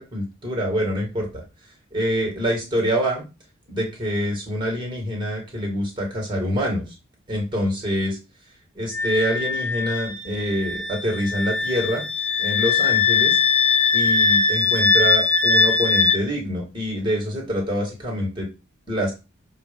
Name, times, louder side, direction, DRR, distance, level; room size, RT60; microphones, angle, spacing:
voice 1, 0.0-1.4 1.9-3.2 3.7-7.0 7.3-8.2 8.7-12.0 12.4-13.4 13.9-18.5 18.9-19.1, equal, 20° right, 0 dB, 2.2 m, -25 dB
Wind instrument woodwind instrument, 8.9-16.2, left 4 dB, 10° left, 0.8 m, -21 dB
7.1 x 2.8 x 5.3 m, 0.28 s
head